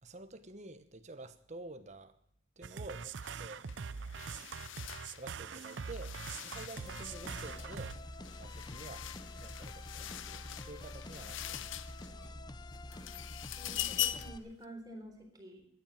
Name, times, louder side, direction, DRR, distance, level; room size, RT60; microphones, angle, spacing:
voice 1, 0.0-2.2 2.6-3.7 5.1-8.0 8.3-9.1 9.4-11.8, right 2 dB, 35° right, 1.1 m, -49 dB
sound 1, 2.6-8.0, right 5 dB, 60° right, 0.5 m, -43 dB
sound 2, 3.2-3.4 3.7-12.3 12.7-14.4, left 13 dB, 70° left, 0.6 m, -42 dB
sound 3, 6.8-14.4, left 1 dB, 20° left, 0.6 m, -47 dB
voice 2, 13.6-15.7, right 1 dB, 20° right, 3.8 m, -49 dB
16.0 x 10.5 x 7.4 m
head